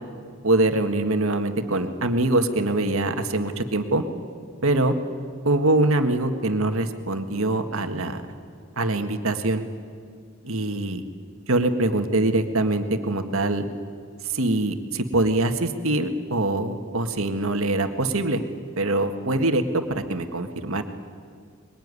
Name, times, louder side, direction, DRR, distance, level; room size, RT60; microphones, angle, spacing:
voice 1, 0.4-4.0 4.6-4.9 5.5-8.2 8.8-9.6 10.4-11.0 11.5-13.7 14.3-18.4 18.8-20.8, right 2 dB, 75° right, 7 dB, 1.7 m, -23 dB
23.0 x 22.0 x 9.8 m, 2.2 s
head